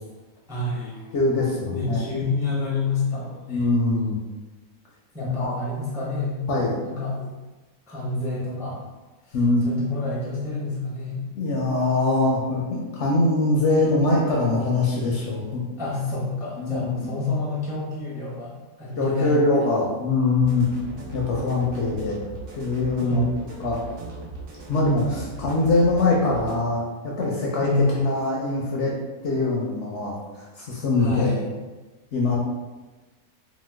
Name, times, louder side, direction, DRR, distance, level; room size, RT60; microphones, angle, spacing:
voice 1, 0.5-1.1 1.7-3.6 5.1-6.4 6.8-7.3 7.9-8.8 9.3-9.4 9.6-11.2 11.8-11.9 15.8-19.7 23.0-23.2 27.6-27.9 31.0-31.5, left 3 dB, 5° right, -7 dB, 0.4 m, -28 dB
voice 2, 1.1-2.0 3.5-4.2 5.2-5.6 6.5-6.7 9.3-9.6 11.3-15.6 16.6-17.1 19.0-20.7 21.1-22.2 22.5-23.2 23.6-23.8 24.7-28.9 29.2-31.3 32.1-32.4, left 2 dB, 65° left, -4 dB, 0.7 m, -23 dB
sound 1, 20.4-26.5, right 2 dB, 60° right, 1.1 m, -38 dB
2.9 x 2.1 x 3.3 m, 1.2 s
omnidirectional pair, 1.5 m